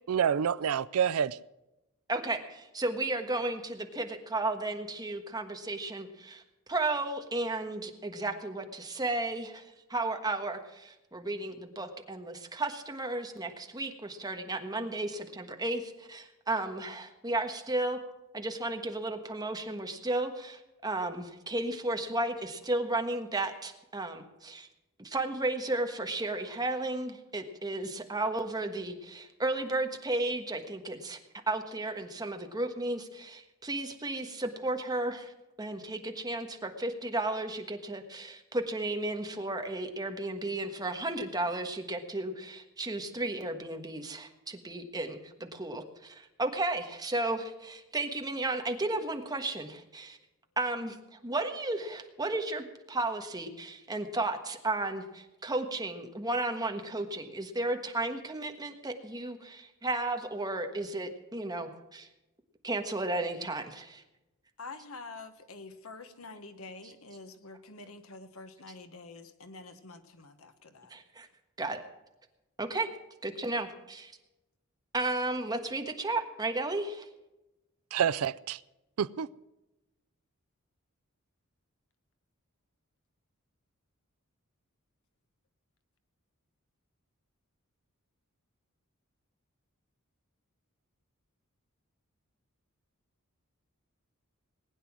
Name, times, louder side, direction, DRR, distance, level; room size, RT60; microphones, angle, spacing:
voice 1, 0.1-1.4 77.9-78.6 79.0-79.3, right 8 dB, 75° right, 0.4 m, -28 dB
voice 2, 2.1-6.4 6.7-18.0 18.3-24.7 25.0-31.2 31.5-35.3 35.6-50.2 50.6-62.1 62.6-64.0 70.9-71.3 71.6-71.8 72.6-72.9 73.2-74.1 74.9-77.1, right 2 dB, 20° right, 1.4 m, -34 dB
voice 3, 64.6-70.9, left 3 dB, 70° left, 1.3 m, -47 dB
19.5 x 9.4 x 6.1 m
head